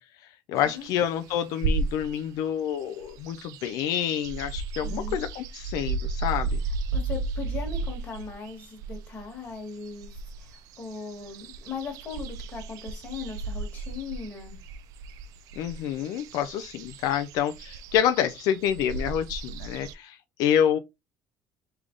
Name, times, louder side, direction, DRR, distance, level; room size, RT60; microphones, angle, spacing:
voice 1, 0.5-6.6 15.6-20.8, left 9 dB, 70° left, 0.4 m, -27 dB
sound 1, 0.6-2.3 2.7-19.9, right 4 dB, 60° right, 0.4 m, -34 dB
voice 2, 4.8-5.2 6.9-14.6 19.7-19.8, left 5 dB, 25° left, 1.5 m, -39 dB
3.5 x 3.4 x 3.7 m
cardioid pair, 175°, 7 cm